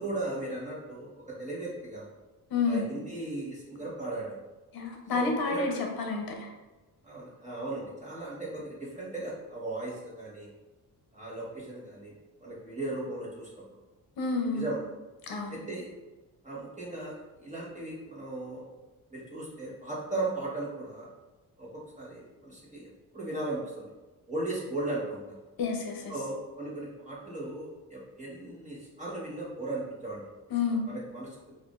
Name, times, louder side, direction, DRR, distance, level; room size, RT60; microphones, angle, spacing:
voice 1, 0.0-2.1 2.7-4.4 5.1-5.8 7.0-10.5 11.1-12.1 12.4-13.5 14.5-14.8 15.5-15.9 16.4-17.1 17.4-18.6 19.1-21.1 21.6-23.9 24.3-25.4 26.1-30.2 30.7-31.4, right 2 dB, 20° right, -6 dB, 1.2 m, -37 dB
voice 2, 2.5-2.8 4.7-5.7 6.0-6.5 14.2-14.7 15.2-15.6 25.6-26.1 30.5-30.9, left 4 dB, 65° left, 2 dB, 0.7 m, -29 dB
5.8 x 2.6 x 2.4 m, 1.2 s
wide cardioid pair, 155°, 39 cm